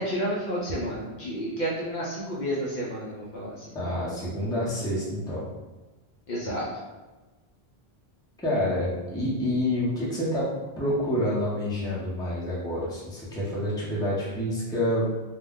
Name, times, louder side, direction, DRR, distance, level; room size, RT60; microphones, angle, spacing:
voice 1, 0.0-3.8 6.3-6.6, equal, 55° left, -6 dB, 0.6 m, -31 dB
voice 2, 3.7-5.4 8.4-10.5 10.8-15.1, left 1 dB, 5° left, -7 dB, 0.6 m, -28 dB
2.4 x 2.1 x 3.5 m, 1.2 s
omnidirectional pair, 1.0 m